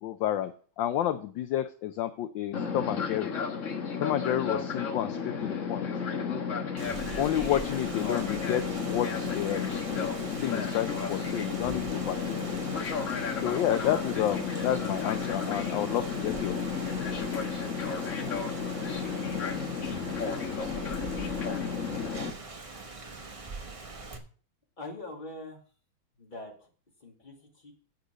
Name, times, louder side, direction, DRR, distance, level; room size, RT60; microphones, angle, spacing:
voice 1, 0.0-3.3 4.0-5.9 7.2-12.6 13.4-16.8, left 11 dB, 75° left, 10 dB, 1.2 m, -30 dB
Fixed-wing aircraft airplane, 2.5-22.3, left 6 dB, 45° left, 1.3 m, -32 dB
Rain, 6.8-24.2, right 3 dB, 35° right, 0.5 m, -42 dB
voice 2, 21.7-22.0 24.8-25.6 26.2-26.5 27.0-27.4 27.6-27.7, left 2 dB, 25° left, 0 dB, 2.2 m, -42 dB
8.3 x 6.6 x 6.1 m, 0.42 s
omnidirectional pair, 2.3 m